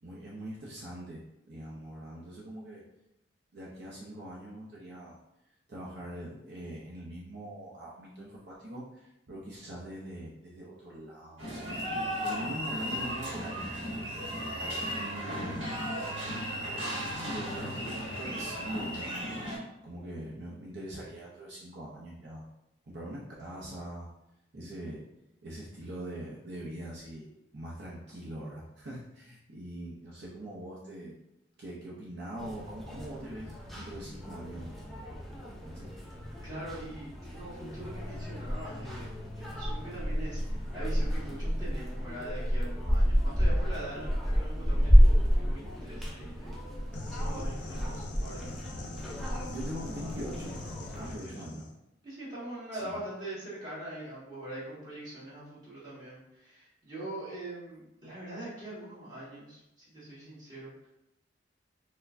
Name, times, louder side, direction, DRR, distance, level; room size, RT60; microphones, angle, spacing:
voice 1, 0.0-1.2 1.5-2.8 3.5-5.2 5.7-11.8 12.2-14.1 14.9-15.8 16.9-19.5 19.8-22.5 22.8-24.1 24.5-25.1 25.4-31.1 31.6-34.7 35.6-35.9 49.5-50.6 50.9-51.7 52.7-53.0, right 1 dB, 60° right, -5 dB, 0.6 m, -42 dB
sound 1, 11.4-19.6, equal, 85° right, 1.0 m, -35 dB
sound 2, 32.4-51.1, equal, ahead, 0.4 m, -29 dB
voice 2, 36.4-39.1 39.4-46.6 47.1-48.7 50.9-51.4 52.0-60.9, right 1 dB, 20° right, -10 dB, 1.4 m, -43 dB
sound 3, 46.9-51.7, left 2 dB, 65° left, 0.5 m, -43 dB
4.4 x 2.1 x 2.5 m, 0.86 s
head